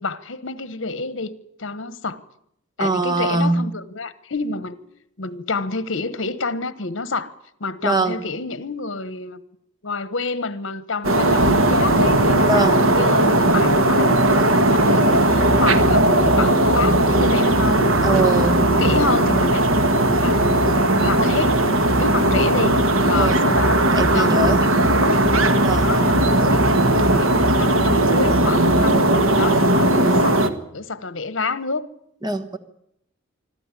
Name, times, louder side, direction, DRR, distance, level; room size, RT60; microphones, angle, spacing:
voice 1, 0.0-1.3 1.6-2.2 2.8-4.7 5.2-7.3 7.6-9.4 9.8-18.3 18.8-19.6 20.2-21.6 22.0-22.8 23.1-23.8 24.1-25.2 25.7-26.6 27.1-30.4 30.7-31.8, left 3 dB, 60° left, 1.2 m, -28 dB
voice 2, 2.8-3.6 7.8-8.2 12.4-12.8 18.0-18.6 23.1-23.4 23.9-24.6 25.6-26.1 32.2-32.6, right 3 dB, 20° right, 1.3 m, -22 dB
sound 1, 11.0-30.5, right 1 dB, 80° right, 1.6 m, -17 dB
sound 2, 15.1-28.8, equal, ahead, 6.2 m, -30 dB
25.0 x 13.0 x 9.9 m
head